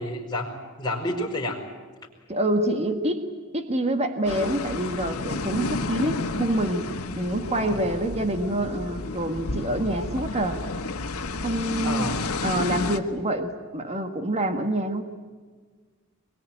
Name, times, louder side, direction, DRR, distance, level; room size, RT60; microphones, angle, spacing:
voice 1, 0.0-1.6 7.5-7.8 11.8-12.2, left 1 dB, 15° left, -2 dB, 5.0 m, -30 dB
voice 2, 2.3-3.2 3.5-6.9 7.2-10.6 11.4-12.1 12.4-15.0, right 1 dB, 30° right, 6 dB, 1.6 m, -26 dB
sound 1, 4.2-13.0, left 3 dB, 80° left, 1.5 m, -31 dB
24.0 x 22.5 x 9.1 m, 1.5 s
head